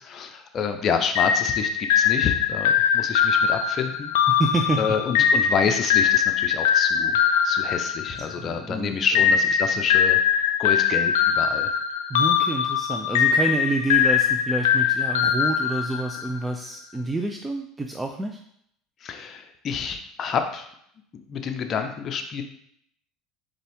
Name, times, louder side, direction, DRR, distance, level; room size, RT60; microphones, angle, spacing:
voice 1, 0.0-4.1 4.8-7.2 7.4-10.2 10.6-11.7 19.0-20.7 21.1-22.4, left 6 dB, 40° left, 6 dB, 0.6 m, -28 dB
sound 1, 1.2-8.6 9.2-16.4, left 8 dB, 85° left, 0.3 m, -22 dB
voice 2, 4.3-4.8 5.2-5.3 8.4-9.0 12.1-18.4, right 2 dB, 10° right, 3 dB, 0.4 m, -28 dB
4.1 x 3.4 x 3.5 m, 0.70 s
supercardioid pair, 95°, 0 cm